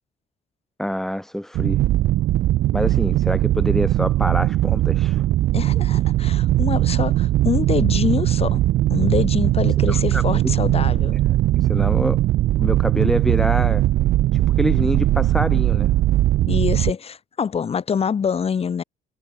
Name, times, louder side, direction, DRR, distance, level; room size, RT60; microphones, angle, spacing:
voice 1, 0.8-1.8 2.7-5.2 9.9-10.5 11.1-11.2 11.7-12.2 12.6-13.8 14.3-15.9, equal, ahead, 3.0 m, -26 dB
sound 1, 1.5-16.9, right 14 dB, 65° right, 0.7 m, -19 dB
voice 2, 5.5-8.6 8.9-11.2 16.4-18.8, left 6 dB, 35° left, 2.7 m, -25 dB
cardioid pair, 110°, 17 cm